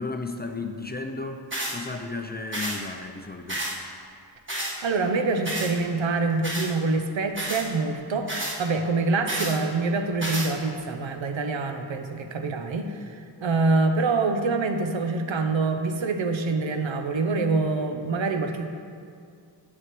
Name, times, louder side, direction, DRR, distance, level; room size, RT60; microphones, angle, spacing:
voice 1, 0.0-1.4 1.7-3.7, left 3 dB, 20° left, 5 dB, 0.4 m, -34 dB
sound 1, 1.5-1.8 2.5-2.8 3.5-3.8 4.5-4.7 5.5-5.7 6.4-6.7 7.3-7.7 8.3-8.6 9.3-9.6 10.2-10.5, right 1 dB, 25° right, 1.4 m, -30 dB
voice 2, 4.8-8.3 8.6-13.1 13.4-18.7, right 3 dB, 75° right, 6 dB, 0.7 m, -25 dB
9.6 x 7.7 x 3.1 m, 2.3 s
wide cardioid pair, 75°, 46 cm